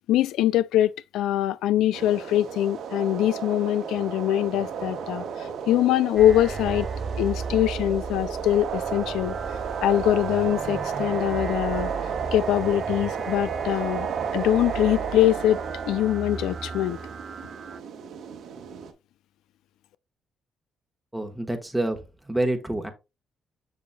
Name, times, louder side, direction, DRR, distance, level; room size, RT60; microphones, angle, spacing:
voice 1, 0.1-6.9 7.2-9.4 9.8-11.9 12.3-14.1 14.3-15.6 15.9-17.0, left 12 dB, 85° left, 0.3 m, -23 dB
sound 1, 1.9-18.9, right 7 dB, 75° right, 1.1 m, -33 dB
sound 2, 6.2-17.8, right 5 dB, 40° right, 0.4 m, -36 dB
voice 2, 21.1-22.9, right 1 dB, 5° right, 1.2 m, -28 dB
7.0 x 6.3 x 2.2 m
cardioid pair, 90°, 0 cm